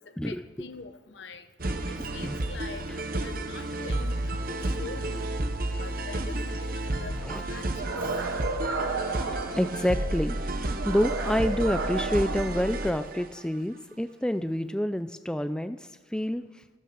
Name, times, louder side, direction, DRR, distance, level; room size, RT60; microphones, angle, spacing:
voice 1, 0.2-1.5 1.9-5.3 5.8-7.1 7.5-7.9, left 3 dB, 65° left, 9 dB, 1.2 m, -44 dB
sound 1, 1.6-13.4, right 1 dB, 50° right, 1.0 m, -31 dB
voice 2, 1.9-2.4 7.2-7.4 9.3-16.5, equal, 5° left, 10 dB, 0.4 m, -28 dB
sound 2, 7.8-10.2 10.8-13.2, right 3 dB, 90° right, 1.7 m, -33 dB
12.5 x 12.0 x 6.9 m, 1.3 s
head